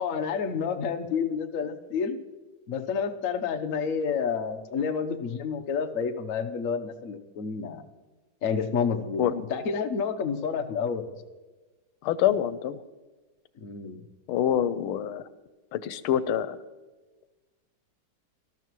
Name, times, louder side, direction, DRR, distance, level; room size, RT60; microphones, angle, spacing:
voice 1, 0.0-2.2 2.7-7.8 8.4-9.2 9.5-11.2 13.6-14.0, left 6 dB, 50° left, 6 dB, 1.0 m, -29 dB
voice 2, 12.0-12.8 14.3-15.2 15.7-16.6, left 10 dB, 90° left, 14 dB, 1.5 m, -26 dB
19.5 x 13.0 x 3.1 m, 1.2 s
omnidirectional pair, 2.3 m